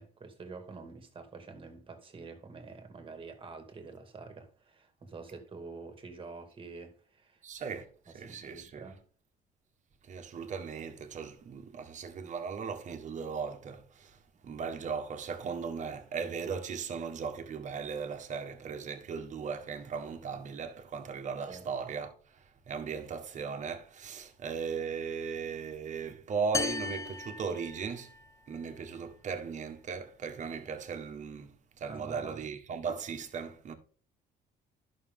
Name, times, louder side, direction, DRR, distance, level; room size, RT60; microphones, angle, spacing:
voice 1, 0.0-7.4 7.7-7.8 8.1-9.0 21.5-21.7 31.9-32.4, right 4 dB, 30° right, 2.1 m, -47 dB
voice 2, 7.4-7.9 8.1-8.9 10.1-14.1 14.4-22.1 22.7-28.1 28.5-31.5 31.8-33.7, right 5 dB, 45° right, 1.5 m, -37 dB
sound 1, 26.5-28.3, left 4 dB, 20° left, 0.5 m, -36 dB
11.5 x 6.3 x 3.7 m
cardioid pair, 110°, 17 cm